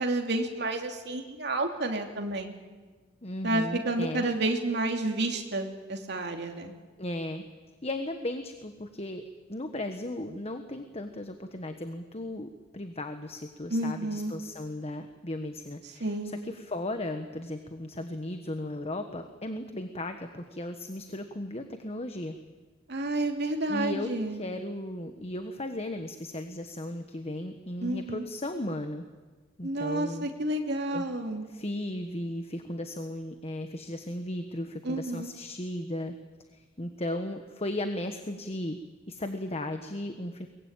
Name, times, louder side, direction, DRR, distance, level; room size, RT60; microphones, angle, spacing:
voice 1, 0.0-2.5 3.4-6.7 13.7-14.3 16.0-16.4 22.9-24.4 27.8-28.2 29.6-31.4 34.8-35.3, right 2 dB, 60° right, 3 dB, 2.9 m, -30 dB
voice 2, 3.2-4.2 7.0-7.4 7.8-9.2 9.5-22.4 23.7-29.1 29.6-30.3 30.9-31.0 31.5-36.1 36.5-38.8 39.1-40.5, left 1 dB, 35° left, 7 dB, 1.3 m, -36 dB
23.0 x 21.0 x 9.1 m, 1.3 s
head